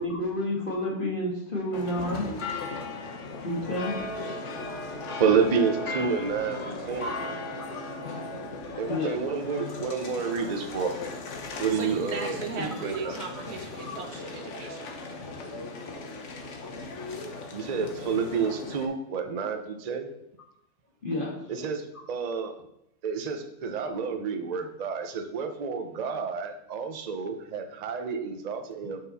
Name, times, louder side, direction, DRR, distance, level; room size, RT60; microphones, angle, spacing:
voice 1, 0.0-2.3 3.4-3.9 7.0-7.2 8.9-9.2 11.5-11.9 12.6-12.7 13.8-14.0 21.0-21.4, left 1 dB, 35° left, -3 dB, 1.9 m, -30 dB
sound 1, 1.7-18.9, left 3 dB, 55° left, 1.1 m, -37 dB
voice 2, 5.0-7.1 8.8-11.0 11.6-13.2 17.5-20.1 21.5-22.5 23.0-29.0, right 5 dB, 45° right, 6 dB, 0.5 m, -29 dB
voice 3, 11.7-14.9, right 4 dB, 70° right, 3 dB, 1.6 m, -37 dB
6.8 x 5.8 x 4.1 m, 0.80 s
omnidirectional pair, 1.7 m